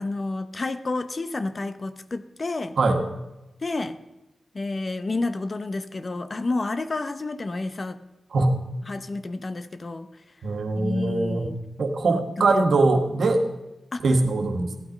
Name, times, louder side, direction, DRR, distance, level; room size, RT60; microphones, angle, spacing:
voice 1, 0.0-2.8 3.6-4.0 4.5-8.0 8.9-10.1 10.8-11.6 12.1-12.7 13.9-14.0, left 2 dB, 50° left, 11 dB, 0.9 m, -30 dB
voice 2, 10.4-11.5 11.8-13.4 14.0-14.7, right 3 dB, 80° right, 5 dB, 1.6 m, -22 dB
15.5 x 8.8 x 5.2 m, 1.0 s
cardioid pair, 45°, 0 cm